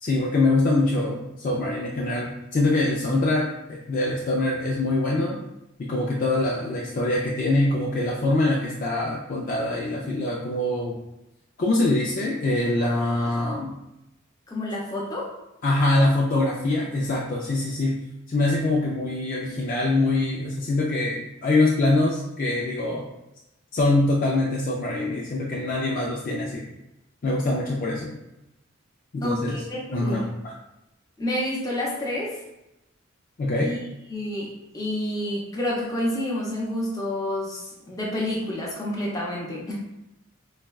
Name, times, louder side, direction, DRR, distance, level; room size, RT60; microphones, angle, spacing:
voice 1, 0.0-5.4 5.8-11.0 11.6-13.8 15.6-18.0 18.3-23.1 23.7-26.7 27.2-28.2 29.1-29.6 29.9-30.5 33.4-33.7, left 2 dB, 40° left, -3 dB, 0.3 m, -24 dB
voice 2, 14.5-15.3 29.2-30.3 31.2-32.3 33.5-33.8 34.1-39.7, left 1 dB, 20° left, -5 dB, 0.7 m, -29 dB
4.1 x 2.2 x 2.3 m, 0.90 s
head